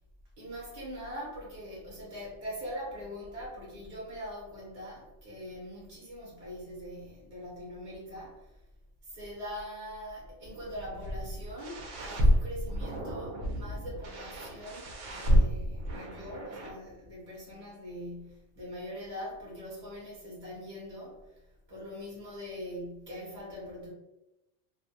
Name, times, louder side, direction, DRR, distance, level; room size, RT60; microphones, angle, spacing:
voice 1, 0.4-8.6 9.0-21.4 21.7-23.9, equal, 40° right, -6 dB, 0.7 m, -42 dB
sound 1, 10.4-16.7, right 1 dB, 85° right, 0.9 m, -30 dB
2.5 x 2.1 x 2.6 m, 0.96 s
omnidirectional pair, 1.2 m